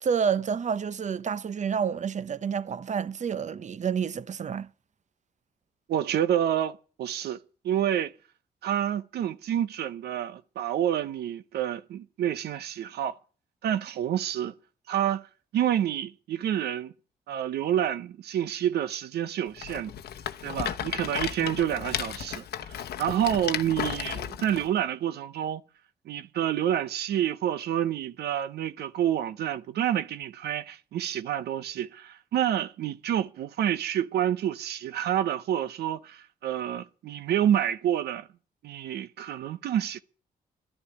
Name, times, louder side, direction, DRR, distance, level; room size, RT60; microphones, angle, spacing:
voice 1, 0.0-4.7, right 7 dB, 45° right, 0.8 m, -29 dB
voice 2, 5.9-7.4 7.6-8.1 8.6-13.2 13.6-14.5 14.9-15.3 15.5-16.9 17.3-19.9 20.4-25.6 26.1-38.3 38.6-40.0, right 10 dB, 85° right, 0.7 m, -28 dB
Rattle, 19.6-24.7, left 10 dB, 80° left, 0.9 m, -34 dB
12.5 x 11.5 x 8.1 m
cardioid pair, 65°, 16 cm